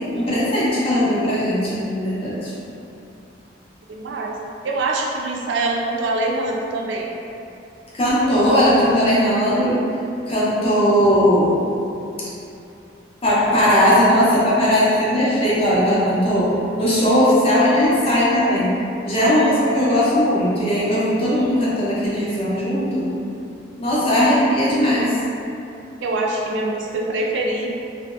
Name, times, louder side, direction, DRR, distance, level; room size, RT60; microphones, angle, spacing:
voice 1, 0.0-2.5 7.9-9.8 10.3-11.6 13.2-18.7 19.0-23.1 23.8-25.2, equal, 30° left, -8 dB, 0.6 m, -18 dB
voice 2, 3.9-4.4 4.6-7.1 26.0-27.7, right 2 dB, 65° right, -1 dB, 0.4 m, -24 dB
2.9 x 2.6 x 2.3 m, 2.7 s
head